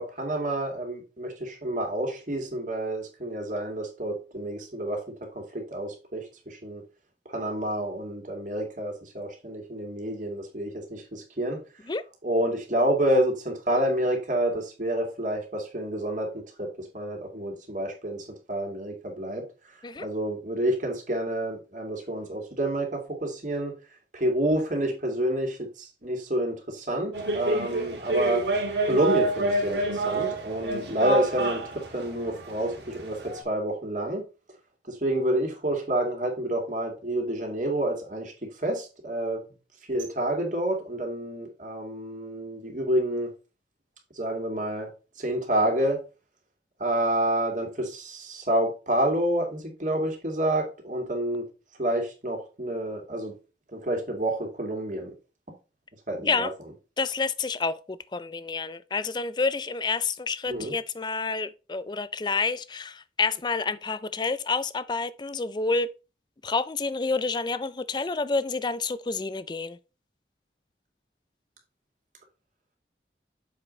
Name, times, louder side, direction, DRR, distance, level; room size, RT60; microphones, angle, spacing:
voice 1, 0.0-5.0 5.3-6.8 7.3-11.6 12.2-19.4 20.0-23.7 24.1-28.5 28.8-31.6 31.9-34.2 34.9-39.4 39.9-43.3 44.1-44.9 45.2-46.0 46.8-51.4 51.8-53.3 53.7-55.1 56.1-56.5 60.5-60.7, right 1 dB, 45° right, 2.4 m, -28 dB
sound 1, 27.1-33.4, right 2 dB, 80° right, 1.9 m, -28 dB
voice 2, 56.2-56.5 57.0-65.9 66.4-69.8, left 4 dB, 25° left, 0.4 m, -29 dB
7.2 x 4.9 x 3.9 m
head